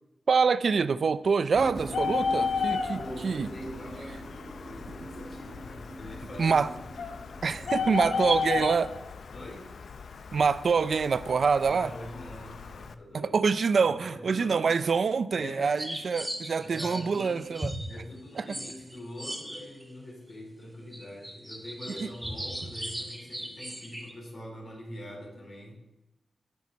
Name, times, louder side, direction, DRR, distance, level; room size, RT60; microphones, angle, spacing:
voice 1, 0.3-3.5 6.4-6.7 7.4-8.9 10.3-11.9 13.3-17.7 18.4-18.5 22.0-22.1, right 5 dB, 60° right, 14 dB, 0.4 m, -25 dB
sound 1, 1.5-8.1, right 2 dB, 40° right, 2.0 m, -42 dB
Bird, 1.8-12.9, left 5 dB, 75° left, 0.6 m, -34 dB
voice 2, 3.0-4.2 4.6-6.8 7.4-8.7 9.3-9.8 11.6-13.3 13.8-14.6 15.3-15.8 16.6-17.5 17.9-25.8, left 1 dB, 50° left, -2 dB, 4.0 m, -44 dB
sound 2, 15.8-19.9 20.3-20.4 20.8-24.1, equal, 5° right, 2.0 m, -38 dB
19.0 x 6.4 x 4.1 m, 1.0 s
wide cardioid pair, 130°, 0 cm